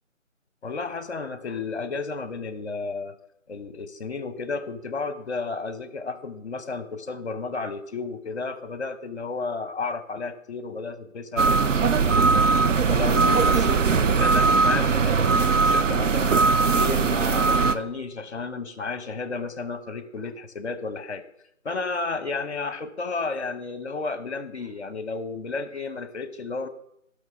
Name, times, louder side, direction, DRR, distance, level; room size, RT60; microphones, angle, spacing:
voice 1, 0.6-3.2 3.5-11.5 12.0-12.5 12.9-16.4 16.7-21.2 21.6-26.7, left 4 dB, 55° left, 12 dB, 1.1 m, -32 dB
sound 1, 11.4-17.8, right 4 dB, 70° right, 0.8 m, -20 dB
16.5 x 6.6 x 3.6 m, 0.77 s
figure-of-eight pair, 155°, 39 cm